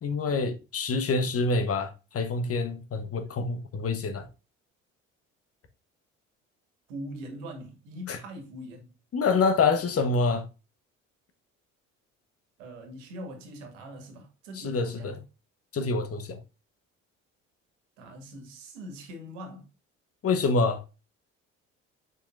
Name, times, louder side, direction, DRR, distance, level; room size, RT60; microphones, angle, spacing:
voice 1, 0.0-4.3 8.1-8.2 9.1-10.5 14.6-15.2 15.7-16.4 20.2-20.8, left 4 dB, 35° left, 1.1 m, -26 dB
voice 2, 6.9-8.9 12.6-15.2 18.0-19.7, equal, 70° right, 1.8 m, -42 dB
6.9 x 5.5 x 2.5 m
figure-of-eight pair, 55°, 39 cm